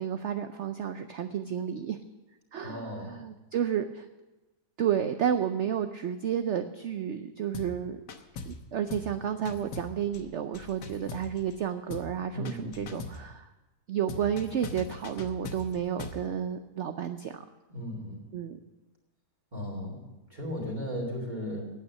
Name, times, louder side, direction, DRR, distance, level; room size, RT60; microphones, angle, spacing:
voice 1, 0.0-2.0 2.5-4.1 4.8-8.0 8.5-13.5 13.9-17.4 18.3-18.6, right 9 dB, 65° right, 8 dB, 0.7 m, -31 dB
voice 2, 2.6-3.2 12.3-13.0 17.7-18.3 19.5-21.7, equal, 25° right, -2 dB, 2.5 m, -36 dB
sound 1, 7.5-7.8 8.1-8.6 8.9-9.2 9.5-11.6 11.9-12.2 12.5-13.3 14.1-16.3, left 4 dB, 90° left, 1.6 m, -41 dB
9.6 x 9.0 x 9.4 m, 1.1 s
omnidirectional pair, 1.8 m